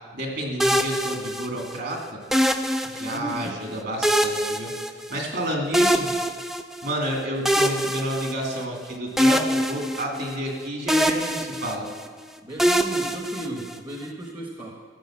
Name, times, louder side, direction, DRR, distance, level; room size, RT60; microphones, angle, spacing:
voice 1, 0.1-2.2 2.8-4.7 5.1-6.1 6.8-11.9, right 1 dB, 55° right, 0 dB, 2.6 m, -30 dB
sound 1, 0.6-1.8 2.3-3.4 4.0-5.4 5.7-6.9 7.4-8.8 9.2-10.6 10.9-12.1 12.6-14.0, equal, ahead, 0.4 m, -24 dB
voice 2, 3.0-3.6 12.4-14.8, right 1 dB, 25° right, -1 dB, 1.1 m, -35 dB
14.0 x 6.8 x 7.4 m, 1.6 s
head